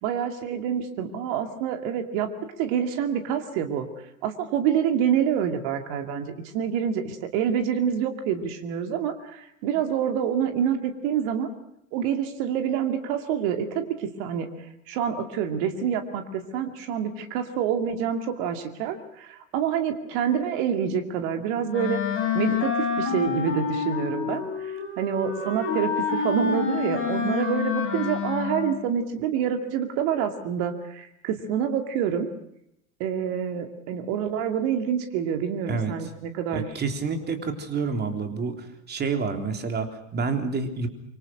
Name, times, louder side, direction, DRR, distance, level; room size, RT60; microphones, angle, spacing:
voice 1, 0.0-2.3 2.6-3.9 4.2-11.5 11.9-14.5 14.9-22.0 22.3-32.3 33.0-36.7, right 8 dB, 50° right, 7 dB, 2.5 m, -27 dB
Wind instrument woodwind instrument, 21.7-28.9, left 6 dB, 30° left, 7.8 m, -28 dB
voice 2, 36.5-40.9, right 4 dB, 25° right, 6 dB, 3.7 m, -28 dB
26.0 x 25.0 x 6.1 m, 0.78 s
figure-of-eight pair, 80°, 40 cm